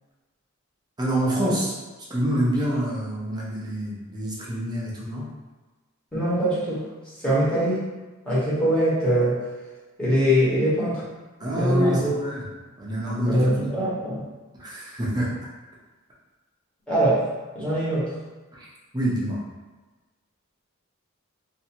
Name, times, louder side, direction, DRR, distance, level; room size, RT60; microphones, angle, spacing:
voice 1, 1.0-1.7 2.1-5.3 11.4-12.5 12.8-13.7 14.6-15.3 18.5-18.7 18.9-19.4, equal, 20° right, -6 dB, 0.6 m, -26 dB
voice 2, 6.1-6.8 7.2-7.9 8.2-9.4 10.0-11.0 11.4-12.2 13.3-14.2 16.9-17.3 17.5-18.1, right 1 dB, 5° left, -11 dB, 1.0 m, -22 dB
2.6 x 2.5 x 2.8 m, 1.2 s
head